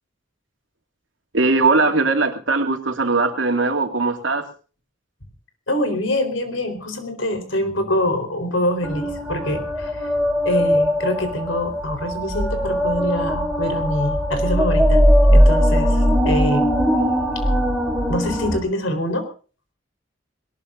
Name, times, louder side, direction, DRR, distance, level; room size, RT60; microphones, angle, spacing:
voice 1, 1.3-4.5, right 3 dB, 80° right, 4 dB, 2.8 m, -19 dB
voice 2, 5.7-10.1 10.4-15.0 15.3-16.6 18.1-19.3, left 1 dB, 90° left, 8 dB, 4.2 m, -25 dB
sound 1, 8.8-18.6, equal, 5° right, 3.1 m, -19 dB
21.0 x 19.5 x 2.6 m, 0.38 s
head